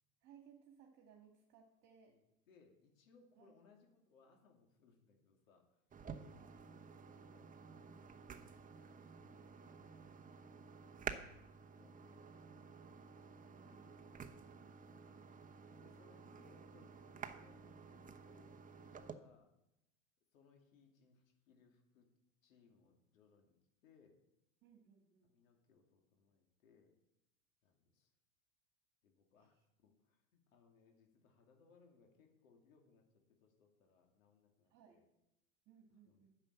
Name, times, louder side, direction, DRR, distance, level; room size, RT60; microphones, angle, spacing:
voice 1, 0.2-2.2 3.4-3.5 6.3-6.6 13.5-14.1 24.6-25.3 29.4-29.5 34.7-35.0 35.7-36.3, right 7 dB, 45° right, 2 dB, 2.0 m, -64 dB
voice 2, 2.1-5.8 6.4-6.6 6.9-7.5 7.9-8.2 8.7-11.4 11.7-13.1 13.5-14.2 15.8-19.5 20.3-22.1 22.4-23.6 23.8-24.2 25.2-27.0 27.6-28.1 29.0-35.0 36.0-36.3, left 5 dB, 80° left, 2 dB, 2.7 m, -70 dB
sound 1, 5.9-19.1, right 6 dB, 20° right, 1.0 m, -52 dB
10.0 x 7.0 x 9.0 m, 0.89 s
hypercardioid pair, 100°, 40 cm